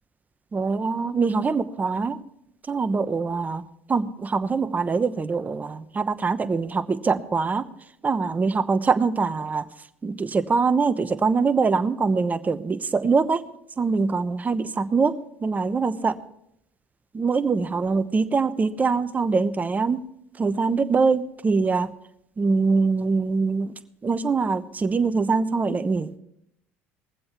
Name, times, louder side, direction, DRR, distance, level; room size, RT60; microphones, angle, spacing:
voice 1, 0.5-2.2 2.7-3.6 3.9-7.7 8.0-9.6 10.0-13.4 13.8-15.1 15.4-16.2 17.1-20.0 20.4-21.9 22.4-23.7 24.0-26.1, right 4 dB, 25° right, 12 dB, 0.9 m, -23 dB
20.5 x 7.7 x 4.4 m, 0.76 s
hypercardioid pair, 70°, 6 cm